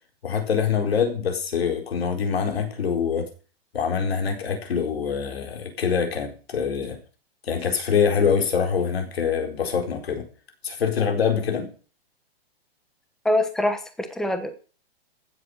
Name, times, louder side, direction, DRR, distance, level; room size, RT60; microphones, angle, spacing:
voice 1, 0.2-3.3 3.7-7.0 7.4-10.3 10.6-11.7, left 6 dB, 80° left, 4.4 m, -24 dB
voice 2, 13.2-14.6, left 1 dB, ahead, 1.1 m, -24 dB
15.5 x 7.6 x 6.5 m
hypercardioid pair, 165°, 30 cm